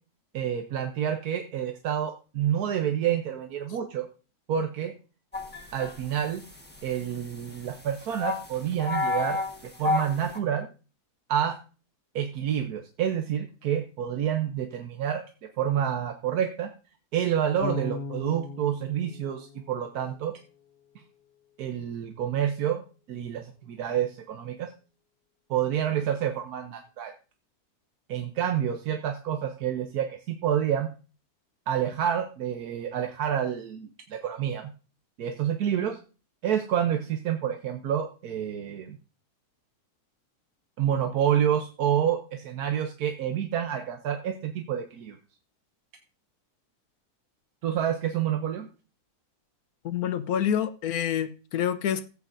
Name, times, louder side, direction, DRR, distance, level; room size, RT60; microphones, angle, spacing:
voice 1, 0.3-4.1 4.5-4.9 5.7-6.4 6.8-9.4 9.8-10.7 11.3-11.6 12.1-15.2 15.6-16.7 17.1-20.3 21.6-22.8 23.1-24.7 25.5-27.1 28.1-30.9 31.7-34.7 35.2-36.0 36.4-39.0 40.8-45.2 47.6-48.7, right 9 dB, 70° right, 1.3 m, -28 dB
sound 1, 5.3-10.4, left 3 dB, 5° left, 1.3 m, -32 dB
Bass guitar, 17.6-20.6, left 3 dB, 50° left, 0.9 m, -38 dB
voice 2, 49.8-52.1, left 9 dB, 70° left, 1.2 m, -27 dB
16.5 x 8.3 x 2.6 m
omnidirectional pair, 1.7 m